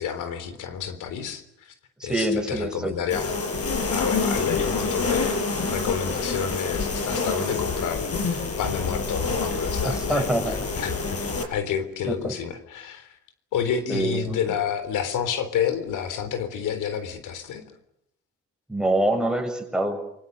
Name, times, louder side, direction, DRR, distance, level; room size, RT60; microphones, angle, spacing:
voice 1, 0.0-1.7 2.0-3.4 3.9-5.4 5.7-13.2 13.5-17.6, left 8 dB, 85° left, 11 dB, 3.7 m, -29 dB
voice 2, 2.0-3.0 9.8-10.6 12.1-12.4 13.9-14.4 18.7-20.0, right 1 dB, ahead, 3 dB, 7.2 m, -25 dB
sound 1, 3.1-11.4, left 4 dB, 50° left, 6.3 m, -27 dB
28.0 x 24.0 x 6.8 m, 0.76 s
cardioid pair, 90°, 30 cm